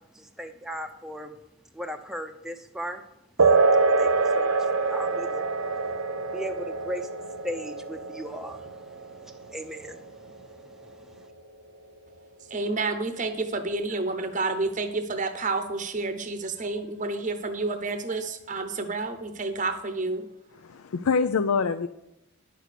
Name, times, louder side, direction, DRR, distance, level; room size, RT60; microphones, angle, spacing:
voice 1, 0.1-1.3 1.7-3.0 3.4-3.6 4.0-5.4 6.3-7.1 7.4-11.3, equal, ahead, 5 dB, 0.6 m, -38 dB
sound 1, 3.4-11.4, right 4 dB, 70° right, 0.7 m, -26 dB
voice 2, 12.5-20.2, right 3 dB, 35° right, 8 dB, 0.8 m, -29 dB
voice 3, 20.5-21.9, left 5 dB, 85° left, 9 dB, 0.4 m, -25 dB
10.0 x 6.7 x 6.5 m, 0.88 s
head